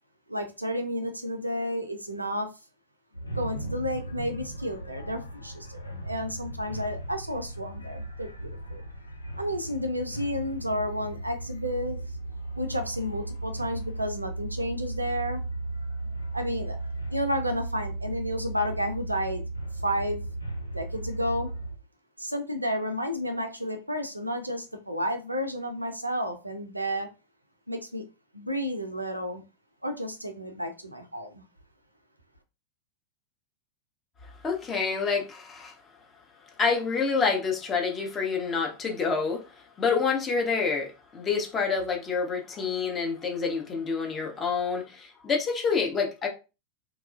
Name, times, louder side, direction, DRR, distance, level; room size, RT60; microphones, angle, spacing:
voice 1, 0.3-2.5 3.4-8.8 9.4-12.0 12.6-15.4 16.3-16.8 17.1-19.4 19.8-20.2 20.7-21.5 22.2-27.1 27.7-28.0 28.3-29.4 29.8-31.4, equal, 85° right, 0.4 m, -31 dB
sound 1, 3.1-21.8, right 2 dB, 85° left, 0.5 m, -36 dB
voice 2, 34.4-35.7 36.6-39.4 39.8-46.3, left 5 dB, 20° left, 0.8 m, -27 dB
2.9 x 2.3 x 2.4 m
figure-of-eight pair, 90°, 0 cm